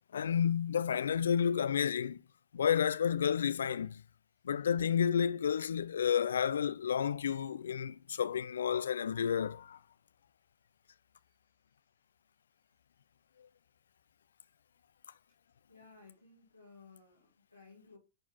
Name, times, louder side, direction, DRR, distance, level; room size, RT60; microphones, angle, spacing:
voice 1, 0.1-2.2 2.5-4.0 4.4-9.8, left 8 dB, 65° left, 0.4 m, -31 dB
voice 2, 15.7-18.0, left 4 dB, 85° left, 2.2 m, -58 dB
10.5 x 4.3 x 3.6 m
figure-of-eight pair, 90°, 0 cm